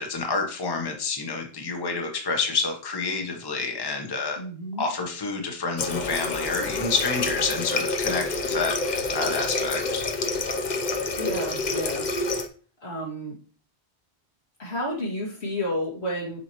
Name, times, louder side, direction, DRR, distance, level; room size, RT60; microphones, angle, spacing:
voice 1, 0.0-4.4 4.8-10.1, left 4 dB, 25° left, 2 dB, 1.0 m, -28 dB
voice 2, 4.4-4.8 11.2-12.1 12.8-13.3 14.6-16.4, equal, 80° left, -4 dB, 2.4 m, -31 dB
Water tap faucet, 5.8-12.5, left 3 dB, 50° left, 0.8 m, -28 dB
7.0 x 4.8 x 3.0 m, 0.39 s
omnidirectional pair, 1.1 m